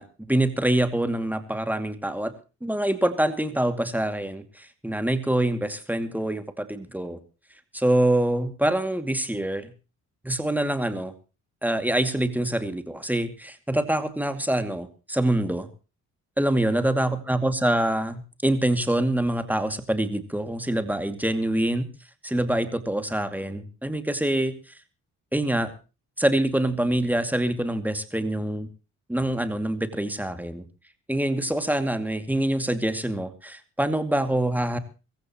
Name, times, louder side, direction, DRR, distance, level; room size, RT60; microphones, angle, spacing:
voice 1, 0.0-2.3 2.6-7.2 7.7-9.7 10.2-11.1 11.6-15.7 16.4-21.9 22.2-24.5 25.3-25.7 26.2-28.7 29.1-30.6 31.1-34.8, right 1 dB, 5° right, 9 dB, 2.4 m, -25 dB
24.0 x 15.0 x 3.0 m, 0.33 s
cardioid pair, 90°, 30 cm